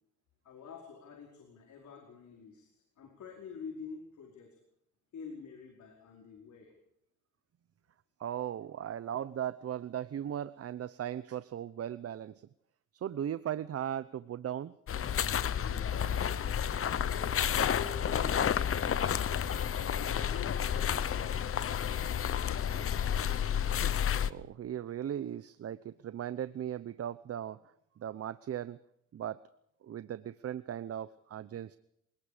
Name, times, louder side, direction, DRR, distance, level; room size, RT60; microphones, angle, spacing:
voice 1, 0.4-4.6 5.1-6.7 15.6-16.3 16.8-19.4 19.8-21.5 22.4-22.9, left 5 dB, 70° left, 2 dB, 4.9 m, -48 dB
voice 2, 8.2-12.4 12.9-14.8 24.1-27.6 28.0-28.8 29.1-29.4 29.8-31.8, right 10 dB, 50° right, 15 dB, 0.8 m, -38 dB
sound 1, 14.9-24.3, left 8 dB, 45° left, 1.0 m, -31 dB
28.0 x 19.0 x 5.1 m, 0.74 s
cardioid pair, 90°, 30 cm